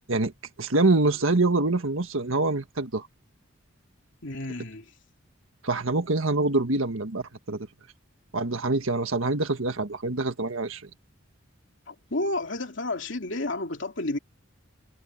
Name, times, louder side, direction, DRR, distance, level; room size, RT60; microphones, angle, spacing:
voice 1, 0.6-3.1 5.6-7.7 8.3-10.8, right 2 dB, 85° right, 1.6 m, -25 dB
voice 2, 4.2-4.9 11.9-14.2, left 2 dB, 65° left, 2.9 m, -31 dB
head